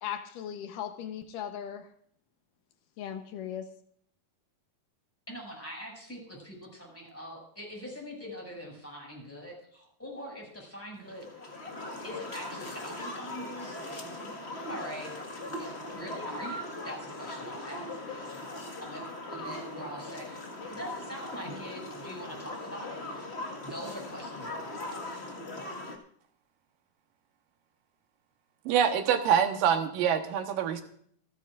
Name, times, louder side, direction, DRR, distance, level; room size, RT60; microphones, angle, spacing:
voice 1, 0.0-1.9 3.0-3.7, left 9 dB, 75° left, 2.5 m, -38 dB
voice 2, 5.3-11.5 12.0-15.1 15.6-18.4 18.8-23.4 23.6-25.0, equal, 5° left, 6.3 m, -43 dB
sound 1, 11.1-26.0, left 2 dB, 30° left, 1.1 m, -40 dB
voice 3, 28.7-30.8, right 8 dB, 90° right, 2.8 m, -25 dB
27.5 x 10.0 x 2.5 m
omnidirectional pair, 3.9 m